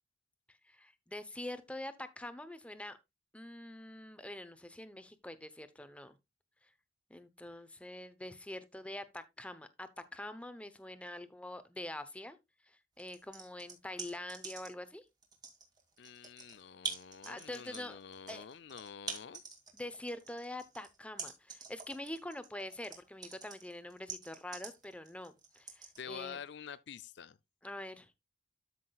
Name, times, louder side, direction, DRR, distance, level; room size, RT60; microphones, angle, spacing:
voice 1, 0.7-3.0 3.3-6.1 7.1-12.4 12.7-15.0 17.3-18.0 18.3-18.5 19.7-26.4 27.6-28.1, left 1 dB, 5° left, 0.8 m, -45 dB
sound 1, 13.0-14.9 15.2-26.0, right 4 dB, 20° right, 2.3 m, -45 dB
voice 2, 16.0-19.4 26.0-27.4, left 7 dB, 60° left, 0.4 m, -48 dB
13.0 x 5.9 x 2.3 m
head